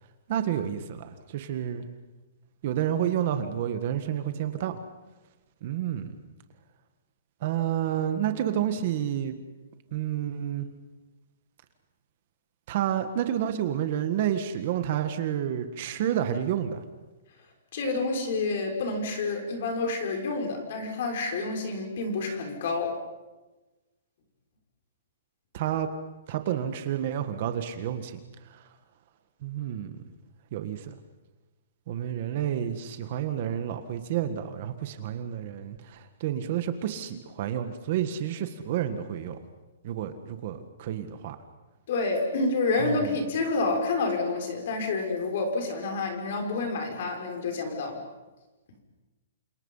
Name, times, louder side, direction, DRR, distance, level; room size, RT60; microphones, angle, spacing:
voice 1, 0.3-1.9 2.6-4.8 5.6-6.1 7.4-9.4 9.9-10.7 12.7-16.8 25.5-25.9 26.3-28.2 28.4-28.6 29.4-30.0 30.5-31.0 31.9-39.4 39.8-41.4 42.8-43.2, right 10 dB, 35° right, 9 dB, 1.7 m, -30 dB
voice 2, 17.7-23.0 41.9-48.0, left 3 dB, 45° left, 3 dB, 6.2 m, -28 dB
29.5 x 27.5 x 5.7 m, 1.1 s
hypercardioid pair, 180°, 0 cm